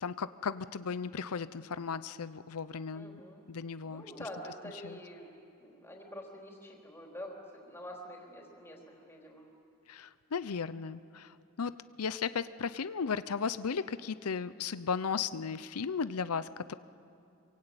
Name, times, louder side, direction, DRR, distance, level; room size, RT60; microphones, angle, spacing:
voice 1, 0.0-3.2 3.5-4.3 4.8-5.0 9.9-16.7, left 6 dB, 80° left, 15 dB, 0.6 m, -36 dB
voice 2, 2.9-3.4 3.9-5.3 5.6-7.4 7.7-9.5, equal, 10° left, -1 dB, 3.8 m, -46 dB
27.0 x 23.5 x 9.0 m, 2.6 s
head